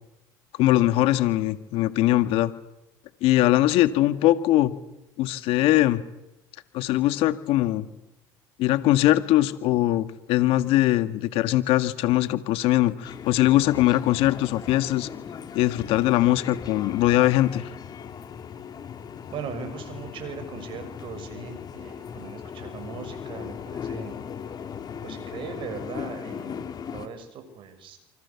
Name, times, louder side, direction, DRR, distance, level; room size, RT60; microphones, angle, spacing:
voice 1, 0.6-2.5 3.2-4.7 5.2-6.0 6.7-7.9 8.6-15.1 15.5-17.7, left 15 dB, 70° left, 11 dB, 1.8 m, -21 dB
sound 1, 13.0-27.1, left 7 dB, 40° left, 3.1 m, -38 dB
voice 2, 19.3-24.2 25.0-28.0, right 6 dB, 55° right, 7 dB, 6.6 m, -39 dB
28.0 x 25.5 x 7.2 m, 0.91 s
supercardioid pair, 95°, 10 cm